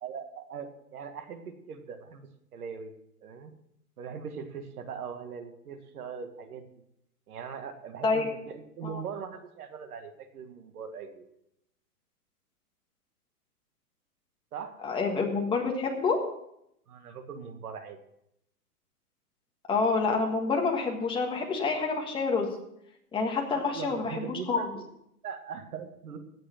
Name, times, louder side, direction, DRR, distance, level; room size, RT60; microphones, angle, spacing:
voice 1, 0.0-2.9 3.2-3.5 4.0-6.7 7.3-11.3 14.5-14.8 16.9-18.0 23.5-24.8 25.2-26.2, right 6 dB, 70° right, 7 dB, 1.9 m, -40 dB
voice 2, 14.8-16.2 19.7-22.5 23.1-24.7, left 4 dB, 10° left, 1 dB, 1.6 m, -28 dB
16.5 x 6.7 x 5.9 m, 0.78 s
hypercardioid pair, 150°, 47 cm